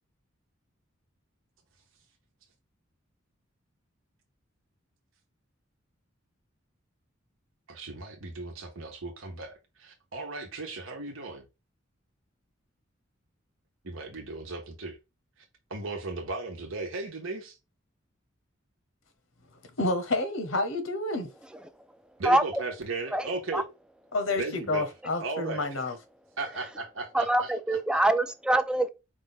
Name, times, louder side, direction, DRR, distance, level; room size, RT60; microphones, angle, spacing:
voice 1, 7.7-11.4 13.8-15.0 15.4-15.5 15.7-17.6 22.2-23.7 24.4-24.8 25.2-25.8 26.4-28.0, right 3 dB, 80° right, 1.0 m, -36 dB
voice 2, 19.8-21.3 24.1-25.9, left 2 dB, 75° left, 1.0 m, -29 dB
voice 3, 22.2-22.6 23.1-23.2 23.5-23.6 27.1-28.9, right 1 dB, 5° right, 0.4 m, -24 dB
4.8 x 2.5 x 4.0 m
head